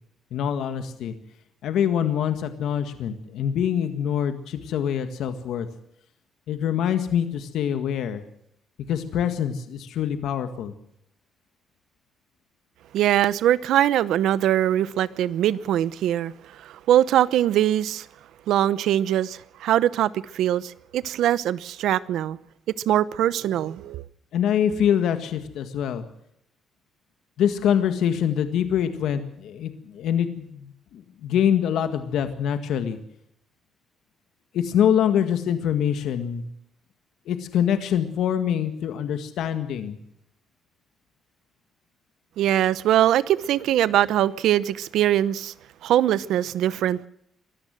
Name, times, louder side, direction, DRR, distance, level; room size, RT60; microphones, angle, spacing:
voice 1, 0.3-1.1 1.6-5.7 6.5-8.2 8.9-10.7 24.3-26.0 27.4-33.0 34.5-36.4 37.3-40.0, left 9 dB, 80° left, 1.8 m, -25 dB
voice 2, 12.9-18.1 18.5-22.4 22.9-24.0 42.4-45.5 45.8-47.1, right 12 dB, 80° right, 0.8 m, -22 dB
23.5 x 14.5 x 7.7 m
cardioid pair, 90°, 0 cm